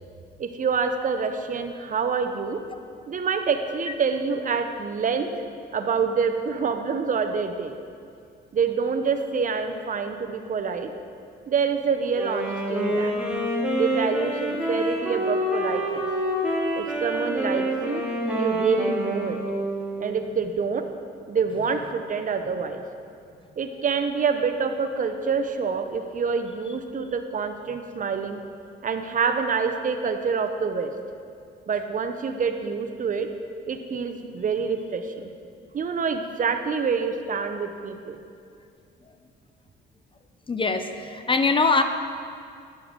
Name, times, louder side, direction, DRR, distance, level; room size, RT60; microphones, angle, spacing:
voice 1, 0.4-2.6 3.1-5.3 5.7-7.7 8.5-10.9 11.5-13.1 13.8-16.1 16.8-18.0 18.4-19.4 20.0-20.9 21.3-22.8 23.6-28.4 28.8-30.9 31.7-33.3 33.7-35.3 35.7-38.2, right 5 dB, 40° right, 7 dB, 0.6 m, -26 dB
Wind instrument woodwind instrument, 12.1-20.2, equal, 5° right, 2.0 m, -27 dB
voice 2, 40.5-41.8, left 3 dB, 25° left, 7 dB, 0.4 m, -22 dB
10.0 x 6.8 x 3.6 m, 2.3 s
cardioid pair, 90°, 20 cm